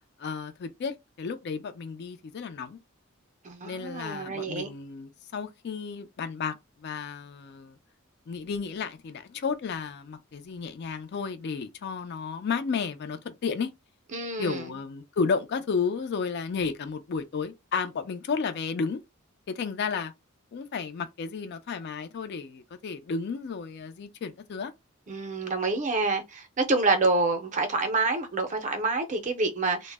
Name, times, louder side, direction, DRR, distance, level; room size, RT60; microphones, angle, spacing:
voice 1, 0.2-2.8 3.6-7.8 8.3-13.7 14.4-19.0 19.5-20.1 20.5-24.7, left 5 dB, 50° left, 0.4 m, -32 dB
voice 2, 3.4-4.7 14.1-14.7 25.1-29.9, right 3 dB, 35° right, 0.5 m, -27 dB
2.0 x 2.0 x 3.3 m
head